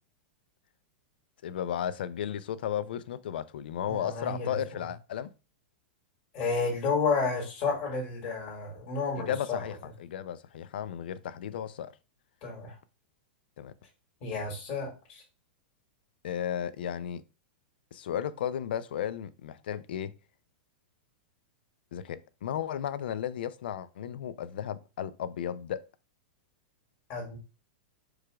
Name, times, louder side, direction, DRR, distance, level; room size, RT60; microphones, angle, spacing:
voice 1, 1.4-5.3 9.2-11.9 13.6-13.7 16.2-17.2 17.9-20.1 21.9-25.9, left 9 dB, 75° left, 0.4 m, -34 dB
voice 2, 3.9-4.8 6.3-9.6 12.4-12.7 14.2-15.2 27.1-27.4, left 4 dB, 30° left, 1.8 m, -31 dB
4.8 x 2.4 x 4.7 m
supercardioid pair, 170°, 5 cm